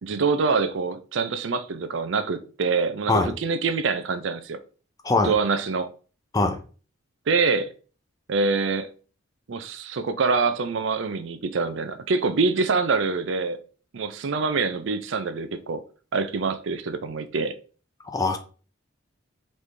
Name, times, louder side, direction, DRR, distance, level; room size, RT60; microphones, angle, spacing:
voice 1, 0.0-4.6 5.2-5.9 7.3-7.7 8.3-8.9 9.5-13.6 13.9-15.8 16.1-17.5, right 4 dB, 65° right, 0.5 m, -25 dB
voice 2, 18.0-18.4, left 3 dB, 20° left, 0.4 m, -22 dB
4.1 x 3.2 x 3.3 m
head